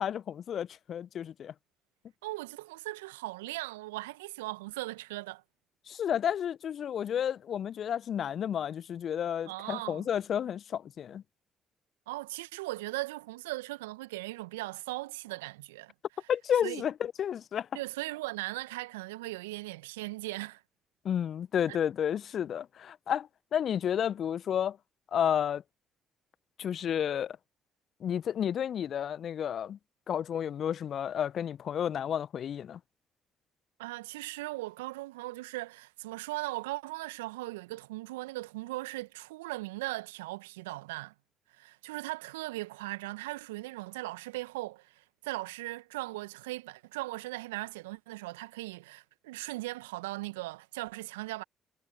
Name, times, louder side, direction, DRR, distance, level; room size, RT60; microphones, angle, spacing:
voice 1, 0.0-1.5 5.9-11.2 16.3-17.7 21.0-24.8 25.1-25.6 26.6-27.4 28.0-29.8 30.1-32.8, left 9 dB, 55° left, 1.0 m, -31 dB
voice 2, 2.2-5.4 9.5-10.1 12.1-15.9 16.6-16.8 17.7-20.6 21.7-21.8 33.8-41.1 41.6-51.4, right 20 dB, 75° right, 1.5 m, -38 dB
figure-of-eight pair, 45°, 0 cm